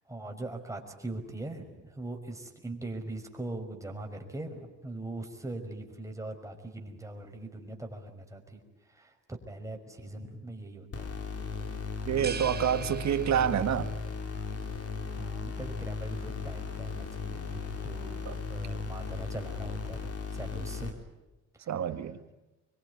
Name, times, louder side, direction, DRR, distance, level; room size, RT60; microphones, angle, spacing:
voice 1, 0.1-8.6 8.9-11.3 15.1-21.0 21.5-21.7, right 2 dB, 10° right, 5.6 m, -41 dB
sound 1, 10.9-20.9, left 4 dB, 50° left, 4.0 m, -36 dB
voice 2, 12.1-13.9 18.3-18.4 21.7-22.2, right 9 dB, 65° right, 1.9 m, -28 dB
sound 2, 12.2-13.9, right 6 dB, 35° right, 1.1 m, -41 dB
24.5 x 23.0 x 9.7 m
cardioid pair, 90°, 30 cm